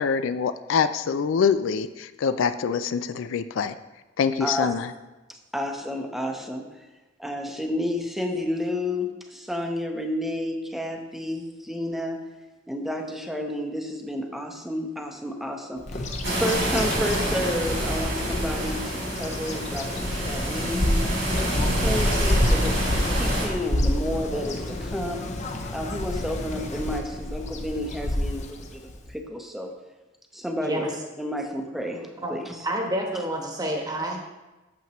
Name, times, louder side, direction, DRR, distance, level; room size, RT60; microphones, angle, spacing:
voice 1, 0.0-3.7 4.2-4.9, left 6 dB, 75° left, 11 dB, 0.4 m, -25 dB
voice 2, 4.4-4.7 5.5-6.7 7.2-12.2 12.7-16.0 16.4-21.0 21.5-25.2 25.7-29.7 30.3-30.9 31.2-32.6, left 1 dB, ahead, 3 dB, 0.7 m, -31 dB
Bird vocalization bird call bird song, 15.9-29.1, left 1 dB, 40° left, 0.7 m, -28 dB
sound 1, 16.2-23.5, right 1 dB, 80° right, 2.7 m, -28 dB
voice 3, 30.6-30.9 32.2-32.4 32.6-34.2, right 1 dB, 20° right, 1 dB, 1.1 m, -28 dB
8.5 x 7.2 x 3.0 m, 1.1 s
head